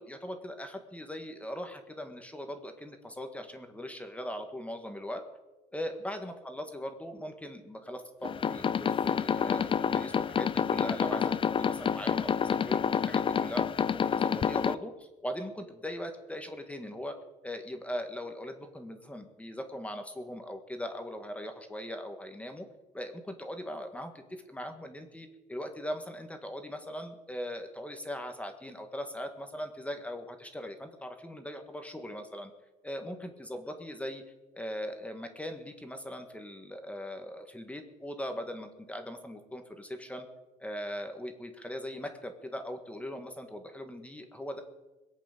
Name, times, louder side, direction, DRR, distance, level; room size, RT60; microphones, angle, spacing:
voice 1, 0.0-5.2 5.7-13.6 14.0-17.1 17.4-22.6 22.9-32.5 32.8-34.2 34.5-40.3 40.6-44.6, equal, 10° left, 5 dB, 1.8 m, -40 dB
sound 1, 8.2-14.7, left 7 dB, 30° left, 0.5 m, -28 dB
22.5 x 8.4 x 6.9 m, 1.1 s
cardioid pair, 110°, 17 cm